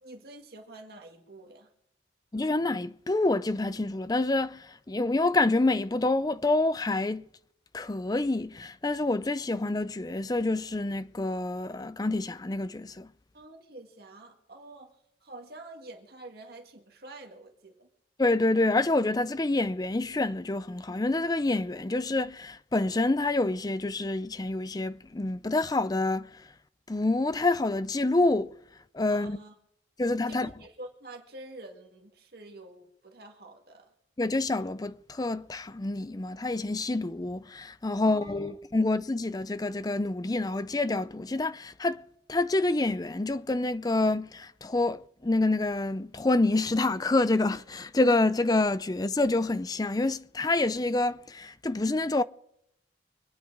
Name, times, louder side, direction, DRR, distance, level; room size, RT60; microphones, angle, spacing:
voice 1, 0.0-1.7 13.3-17.9 29.1-29.5 30.3-33.9 38.0-38.5, right 2 dB, 60° right, 1.9 m, -47 dB
voice 2, 2.3-7.2 7.7-13.1 18.2-26.3 26.9-28.5 28.9-29.4 30.0-30.5 34.2-42.0 42.3-52.2, left 2 dB, 20° left, 0.5 m, -27 dB
24.5 x 9.4 x 4.8 m
head